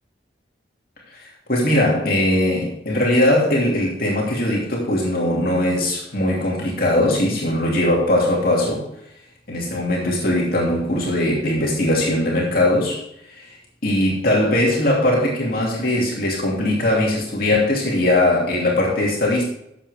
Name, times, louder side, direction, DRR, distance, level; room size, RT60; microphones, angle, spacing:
voice 1, 1.1-8.9 9.5-13.6 13.8-19.4, left 1 dB, 55° left, -3 dB, 2.7 m, -20 dB
13.0 x 7.7 x 3.5 m, 0.78 s
head